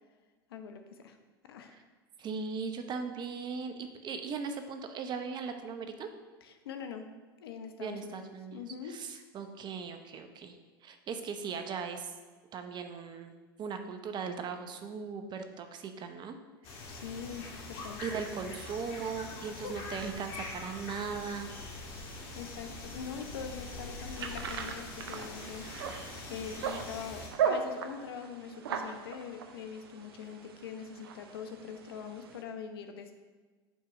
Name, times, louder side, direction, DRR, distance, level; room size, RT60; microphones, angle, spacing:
voice 1, 0.5-1.2 1.4-1.8 6.4-7.1 7.4-9.0 16.9-18.0 19.6-19.7 22.3-33.1, left 7 dB, 80° left, 6 dB, 0.8 m, -43 dB
voice 2, 2.2-6.1 7.8-8.6 8.9-10.6 10.8-12.1 12.5-16.4 18.0-21.5, right 5 dB, 35° right, 7 dB, 0.8 m, -38 dB
sound 1, 16.6-27.3, left 2 dB, 55° left, 2.0 m, -43 dB
sound 2, 24.2-32.4, right 7 dB, 80° right, 0.7 m, -38 dB
5.4 x 4.5 x 6.2 m, 1.4 s
hypercardioid pair, 95°, 12 cm